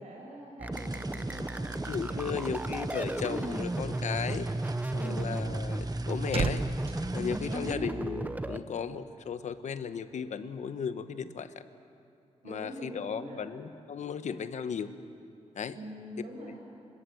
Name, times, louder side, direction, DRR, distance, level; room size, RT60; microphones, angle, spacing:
voice 1, 0.0-2.6 4.9-5.3 7.4-7.6 12.4-13.5 15.7-16.6, right 1 dB, 70° right, -1 dB, 6.2 m, -44 dB
sound 1, 0.6-8.6, right 2 dB, 15° right, 0.7 m, -34 dB
sound 2, 0.7-7.8, right 3 dB, 30° right, 1.1 m, -50 dB
voice 2, 1.8-4.5 4.9-6.6 7.1-11.5 12.4-14.9 15.6-15.8, left 7 dB, 75° left, 11 dB, 1.0 m, -35 dB
sound 3, 5.8-8.3 8.5-8.8, right 5 dB, 55° right, 1.1 m, -36 dB
27.5 x 16.5 x 7.9 m, 2.6 s
wide cardioid pair, 130°, 12 cm